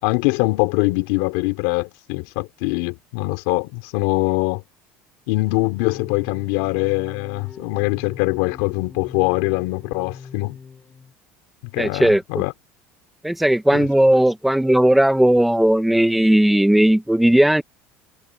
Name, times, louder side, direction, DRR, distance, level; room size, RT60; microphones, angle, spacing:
voice 1, 0.0-4.6 5.3-10.6 11.7-12.5 13.7-13.9, left 24 dB, 75° left, 5.2 m, -23 dB
sound 1, 5.5-11.1, left 5 dB, 15° left, 6.6 m, -41 dB
voice 2, 11.8-12.2 13.2-17.6, right 1 dB, ahead, 1.3 m, -16 dB
cardioid pair, 180°, 5 cm